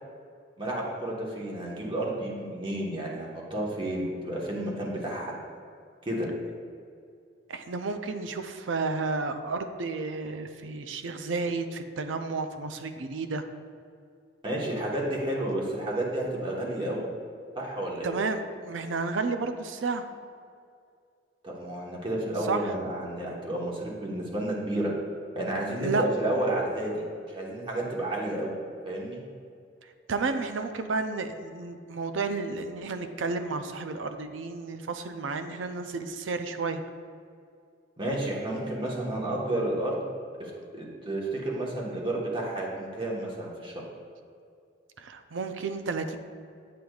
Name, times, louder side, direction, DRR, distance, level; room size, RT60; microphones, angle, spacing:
voice 1, 0.6-5.3 6.0-6.3 14.4-17.1 17.5-18.2 21.4-24.9 25.3-28.6 28.8-29.2 38.0-39.9 40.4-43.8, right 1 dB, 25° right, -3 dB, 1.3 m, -31 dB
voice 2, 7.5-13.5 18.0-20.1 22.4-22.7 25.8-26.1 30.1-36.8 45.0-46.2, right 4 dB, 70° right, 8 dB, 0.5 m, -32 dB
8.4 x 7.7 x 2.4 m, 2.3 s
head